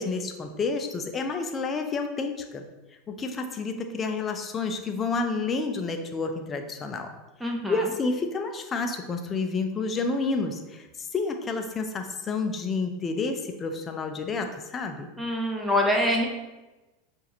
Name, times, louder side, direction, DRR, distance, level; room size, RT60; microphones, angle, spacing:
voice 1, 0.0-2.6 3.1-7.1 7.7-15.1, left 4 dB, 30° left, 6 dB, 0.5 m, -29 dB
voice 2, 7.4-7.8 15.2-16.3, left 1 dB, 5° right, 0 dB, 0.8 m, -25 dB
5.7 x 2.5 x 2.9 m, 1.1 s
hypercardioid pair, 90°, 0 cm